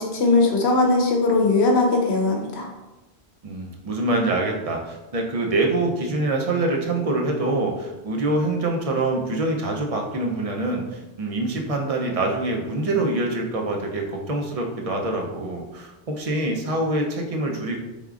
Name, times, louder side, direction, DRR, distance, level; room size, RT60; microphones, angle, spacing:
voice 1, 0.0-2.7, left 3 dB, 90° left, 1 dB, 1.0 m, -19 dB
voice 2, 3.4-17.8, right 2 dB, 45° right, 1 dB, 0.6 m, -25 dB
4.5 x 3.5 x 2.4 m, 1.0 s
omnidirectional pair, 1.1 m